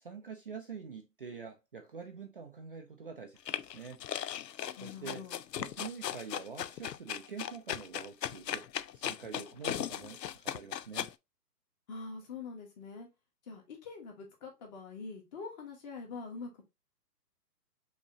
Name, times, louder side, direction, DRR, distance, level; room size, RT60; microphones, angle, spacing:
voice 1, 0.0-4.0 4.8-5.2 5.6-8.7 8.9-11.1, right 5 dB, 40° right, 0.4 m, -46 dB
sound 1, 3.5-11.1, left 10 dB, 90° left, 0.5 m, -37 dB
voice 2, 4.8-5.4 11.9-13.1 13.5-16.6, left 4 dB, 25° left, 1.4 m, -44 dB
5.4 x 2.9 x 2.8 m
hypercardioid pair, 145°, 48 cm